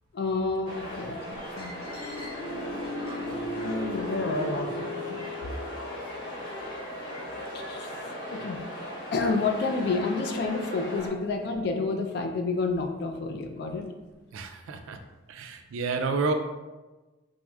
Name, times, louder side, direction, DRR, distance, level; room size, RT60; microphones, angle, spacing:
voice 1, 0.1-1.8 3.5-5.3 7.5-7.9 8.3-8.6 9.1-13.8, left 3 dB, 50° left, 4 dB, 0.3 m, -29 dB
sound 1, 0.6-11.1, equal, 80° left, 1.1 m, -38 dB
sound 2, 1.8-6.9, left 1 dB, 5° left, 0.6 m, -37 dB
voice 2, 14.3-15.0 15.3-16.3, right 4 dB, 80° right, 7 dB, 0.3 m, -30 dB
4.4 x 2.0 x 2.3 m, 1.2 s
head